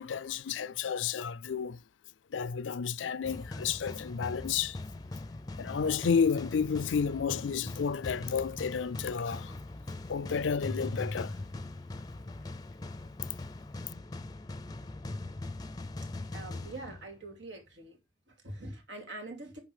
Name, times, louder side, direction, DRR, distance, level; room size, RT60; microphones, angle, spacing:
voice 1, 0.0-1.8 2.3-4.8 5.6-9.5 10.1-11.4, left 6 dB, 90° left, 0.4 m, -31 dB
sound 1, 3.2-17.4, left 2 dB, 20° left, 0.5 m, -41 dB
voice 2, 16.3-18.0 18.3-19.6, right 2 dB, 85° right, 2.7 m, -44 dB
10.5 x 3.8 x 4.9 m
head